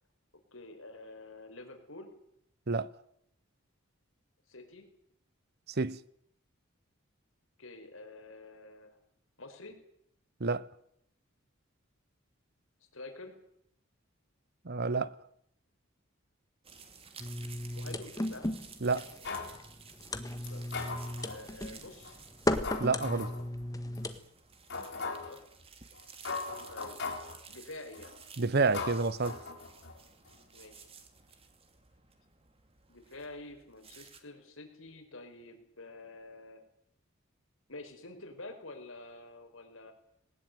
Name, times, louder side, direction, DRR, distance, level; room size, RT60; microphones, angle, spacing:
voice 1, 0.5-2.1 4.5-4.9 7.6-9.0 9.4-9.8 12.9-13.4 17.7-18.5 20.5-20.7 21.2-22.1 25.1-25.4 26.7-27.0 27.5-28.1 30.5-30.8 32.9-36.6 37.7-39.9, left 2 dB, 75° left, 4.9 m, -48 dB
voice 2, 14.6-15.1 18.8-19.1 22.8-23.3 28.4-29.4, right 3 dB, 50° right, 0.9 m, -29 dB
sound 1, 16.6-34.2, right 5 dB, 30° right, 2.6 m, -54 dB
sound 2, 17.2-24.2, left 1 dB, 20° left, 1.6 m, -36 dB
sound 3, 19.2-19.6 20.4-21.4 22.0-22.1 22.6-23.4 23.9-24.0 24.7-25.4 26.0-26.1 26.2-27.4 27.9-28.2 28.7-30.0 30.3-30.4, left 4 dB, 60° left, 4.9 m, -39 dB
20.0 x 19.0 x 9.3 m
head